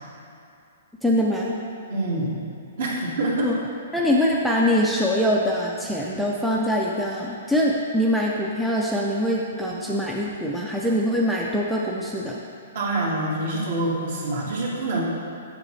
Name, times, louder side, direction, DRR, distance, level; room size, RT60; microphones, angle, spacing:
voice 1, 1.0-1.6 3.4-3.6 3.9-12.4, equal, ahead, -4 dB, 0.4 m, -23 dB
voice 2, 1.9-2.4 2.8-3.5 12.7-15.0, right 2 dB, 55° right, -4 dB, 1.7 m, -26 dB
7.7 x 7.5 x 3.2 m, 2.5 s
hypercardioid pair, 170°, 0 cm